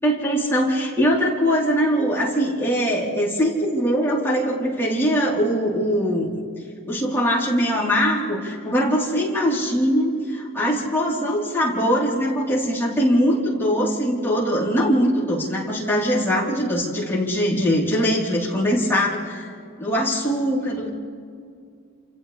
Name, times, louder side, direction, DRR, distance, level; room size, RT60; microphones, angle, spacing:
voice 1, 0.0-6.3 6.9-19.5 19.8-20.9, equal, 10° left, -6 dB, 4.3 m, -22 dB
29.0 x 28.5 x 3.5 m, 2.4 s
head